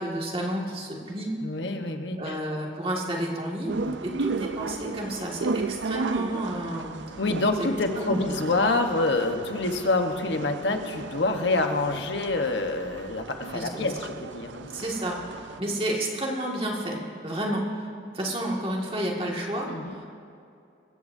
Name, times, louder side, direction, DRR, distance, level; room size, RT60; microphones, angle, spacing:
voice 1, 0.0-1.3 2.2-3.7 4.0-7.0 8.0-8.3 13.5-13.9 14.7-15.2 15.6-20.1, right 1 dB, 30° right, -2 dB, 2.0 m, -31 dB
voice 2, 1.4-2.4 3.9-4.0 7.2-14.7 19.7-20.0, left 2 dB, 80° left, 5 dB, 1.2 m, -27 dB
sound 1, 3.7-15.6, right 3 dB, 85° right, 0.5 m, -35 dB
23.0 x 14.5 x 2.7 m, 2.5 s
head